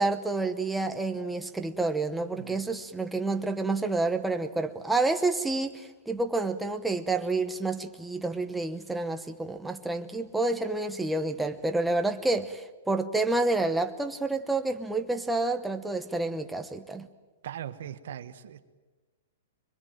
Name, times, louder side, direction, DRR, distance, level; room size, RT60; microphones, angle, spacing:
voice 1, 0.0-17.1, right 2 dB, 5° right, 6 dB, 0.9 m, -29 dB
voice 2, 2.4-2.7 17.4-18.6, right 10 dB, 60° right, 9 dB, 1.4 m, -40 dB
25.5 x 23.0 x 9.1 m, 1.2 s
hypercardioid pair, 170°, 0 cm